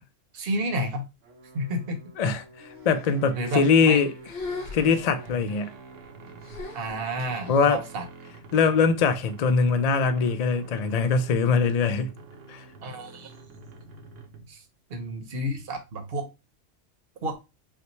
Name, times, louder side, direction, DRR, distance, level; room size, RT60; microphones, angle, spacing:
voice 1, 0.3-1.0 1.5-2.0 3.4-4.0 6.7-8.0 12.8-13.3 14.5-14.6 14.9-16.3 17.2-17.4, right 1 dB, 55° right, 1.0 m, -30 dB
sound 1, 1.2-14.6, right 3 dB, 80° right, 1.1 m, -47 dB
sound 2, 2.6-3.2 3.5-4.0 4.3-5.5 6.4-7.6, left 3 dB, 60° left, 1.3 m, -39 dB
voice 2, 2.9-4.1 4.7-5.7 7.5-7.8 8.5-12.1 12.5-12.6, left 5 dB, 75° left, 0.3 m, -22 dB
5.7 x 2.2 x 3.0 m
omnidirectional pair, 1.3 m